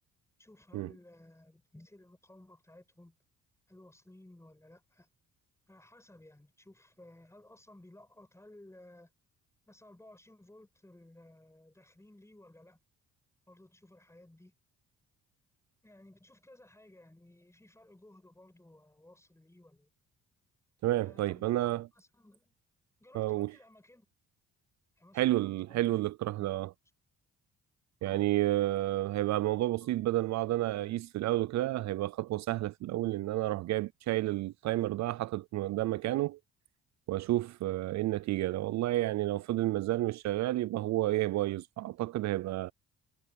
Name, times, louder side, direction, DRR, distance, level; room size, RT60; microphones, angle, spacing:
voice 1, 0.4-3.2 3.7-5.1 5.7-9.1 9.7-12.8 13.5-14.5 15.8-19.9 20.9-22.5 23.0-24.1 25.0-25.9 26.4-26.5 28.0-28.4 29.8-29.9, left 1 dB, 10° left, 7.8 m, -57 dB
voice 2, 20.8-21.9 23.1-23.5 25.1-26.7 28.0-36.4 37.1-42.7, right 16 dB, 65° right, 0.4 m, -30 dB
cardioid pair, 90°, 30 cm